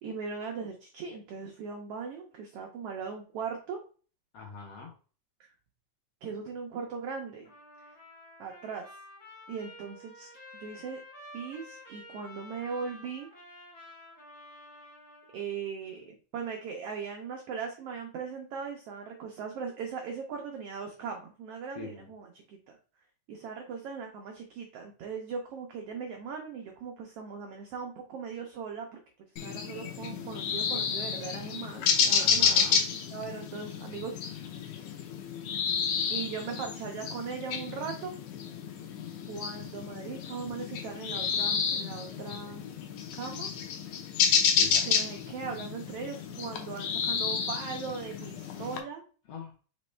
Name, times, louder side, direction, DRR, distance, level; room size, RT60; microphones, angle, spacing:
voice 1, 0.0-3.8 5.4-5.5 6.2-7.5 8.4-8.9 9.5-10.3 10.6-11.0 11.3-13.3 15.3-22.7 23.3-28.9 29.4-32.8 33.1-34.5 36.1-38.2 39.3-42.6 43.1-43.5 44.8-49.0, right 6 dB, 90° right, 2 dB, 1.3 m, -39 dB
voice 2, 4.3-4.9 21.7-22.1 32.2-32.8 44.6-44.9 49.3-49.5, left 5 dB, 70° left, 0 dB, 1.6 m, -43 dB
Trumpet, 7.4-15.5, left 1 dB, 40° left, 0.9 m, -50 dB
sound 1, 29.4-48.8, left 7 dB, 85° left, 2.2 m, -30 dB
5.2 x 3.0 x 3.2 m, 0.38 s
omnidirectional pair, 3.5 m